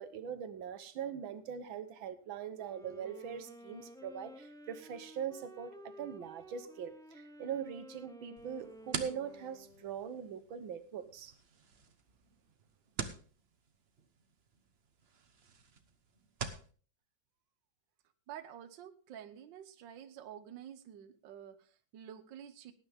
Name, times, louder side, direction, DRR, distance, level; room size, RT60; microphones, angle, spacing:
voice 1, 0.0-11.3 13.0-13.1, right 8 dB, 90° right, 1.8 m, -42 dB
Wind instrument woodwind instrument, 2.4-10.2, equal, 5° left, 0.8 m, -53 dB
sound 1, 8.4-16.7, right 5 dB, 40° right, 1.1 m, -46 dB
voice 2, 18.3-22.7, right 9 dB, 75° right, 1.6 m, -49 dB
18.5 x 9.8 x 3.5 m
omnidirectional pair, 2.1 m